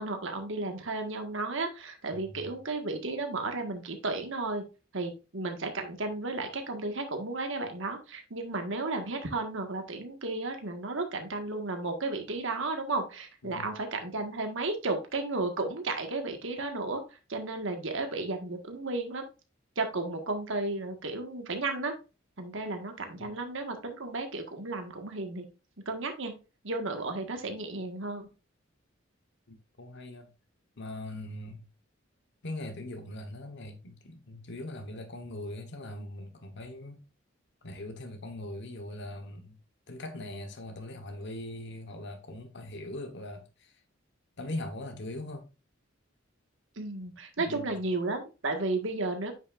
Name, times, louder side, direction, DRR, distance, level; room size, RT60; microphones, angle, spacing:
voice 1, 0.0-4.6 4.9-17.0 17.3-19.2 19.7-21.9 22.4-25.4 25.8-26.3 26.6-28.3 46.8-49.3, right 2 dB, 70° right, 1.6 m, -33 dB
voice 2, 2.1-2.5 13.4-13.7 23.2-23.3 29.5-30.3 30.8-31.7 32.4-37.0 37.6-39.6 39.9-43.8 44.4-45.5 47.4-47.7, left 1 dB, 60° left, 1.2 m, -41 dB
9.1 x 6.3 x 2.5 m
head